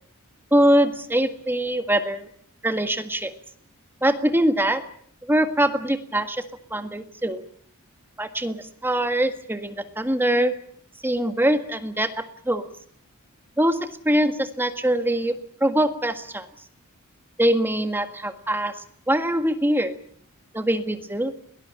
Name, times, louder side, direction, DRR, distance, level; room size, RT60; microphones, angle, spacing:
voice 1, 0.5-2.3 2.6-3.3 4.0-4.8 5.2-6.4 6.7-7.4 8.2-10.6 11.0-12.7 13.6-16.5 17.4-18.8 19.1-19.9 20.5-21.3, right 1 dB, 10° right, 8 dB, 1.7 m, -23 dB
22.0 x 19.0 x 9.0 m, 0.62 s
head